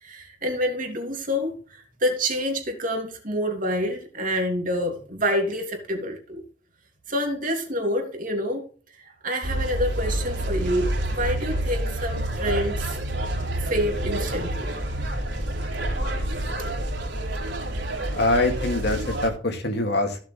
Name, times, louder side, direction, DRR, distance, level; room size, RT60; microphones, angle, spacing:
voice 1, 0.0-6.4 7.1-8.7 9.0-13.0 13.6-14.8, equal, 45° right, 3.0 m, -27 dB
sound 1, 9.4-19.3, right 1 dB, 60° right, 4.3 m, -28 dB
voice 2, 18.1-20.2, left 2 dB, 55° left, 2.5 m, -24 dB
16.0 x 7.3 x 3.4 m
head